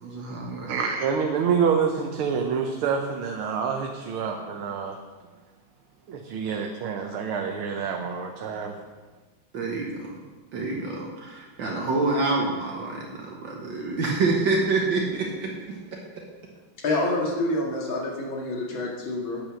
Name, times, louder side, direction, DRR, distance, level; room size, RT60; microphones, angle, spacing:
voice 1, 0.0-0.7 9.5-10.2 10.5-16.2 16.9-17.0, right 3 dB, 65° right, -1 dB, 1.9 m, -27 dB
voice 2, 0.7-5.0 6.1-8.8, right 6 dB, 90° right, 3 dB, 1.7 m, -27 dB
voice 3, 16.8-19.4, left 2 dB, 70° left, -2 dB, 2.8 m, -27 dB
9.1 x 8.6 x 6.3 m, 1.3 s
omnidirectional pair, 2.3 m